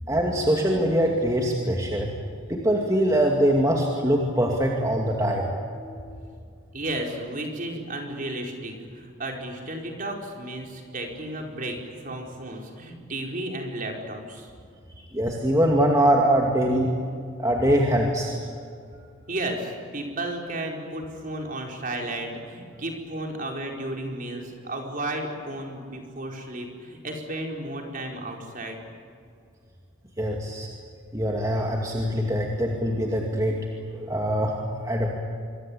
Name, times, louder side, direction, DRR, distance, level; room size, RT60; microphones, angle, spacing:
voice 1, 0.1-2.1 2.5-6.1 15.1-16.9 17.4-18.4 30.2-30.7 31.1-33.6 33.9-34.6 34.8-35.1, equal, 15° right, -1 dB, 2.4 m, -23 dB
voice 2, 6.7-14.5 19.3-28.8, right 1 dB, 40° right, 1 dB, 4.5 m, -33 dB
27.0 x 23.5 x 8.7 m, 2.3 s
head